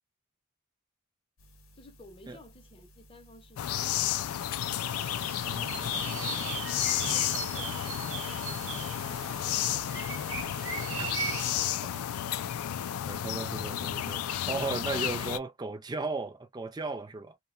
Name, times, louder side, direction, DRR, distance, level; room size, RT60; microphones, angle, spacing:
sound 1, 1.4-11.2, equal, 65° left, 0.8 m, -57 dB
voice 1, 1.7-4.5, left 1 dB, 25° left, 0.7 m, -56 dB
sound 2, 3.6-15.4, left 11 dB, 85° left, 0.3 m, -32 dB
sound 3, 4.7-11.7, right 5 dB, 60° right, 0.8 m, -39 dB
voice 2, 5.4-6.3 11.0-11.1 13.1-17.4, right 3 dB, 20° right, 0.4 m, -36 dB
2.7 x 2.2 x 2.3 m
head